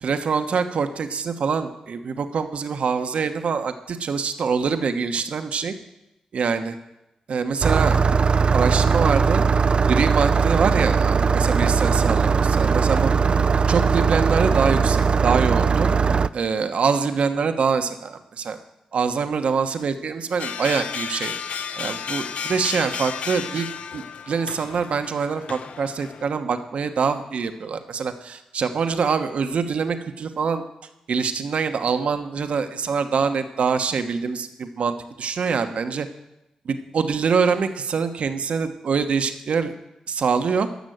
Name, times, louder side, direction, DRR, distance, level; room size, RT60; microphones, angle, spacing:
voice 1, 0.0-5.7 6.3-6.8 7.3-8.0 8.5-9.4 9.9-13.1 13.7-15.9 16.3-18.6 18.9-21.4 21.8-30.6 31.1-36.1 36.6-39.7 40.1-40.7, right 5 dB, 65° right, 8 dB, 1.1 m, -24 dB
Engine starting, 7.6-16.3, right 5 dB, 50° right, 0.4 m, -19 dB
sound 1, 20.4-26.3, left 6 dB, 70° left, 0.6 m, -33 dB
13.5 x 6.2 x 7.9 m, 0.93 s
supercardioid pair, 50°, 2 cm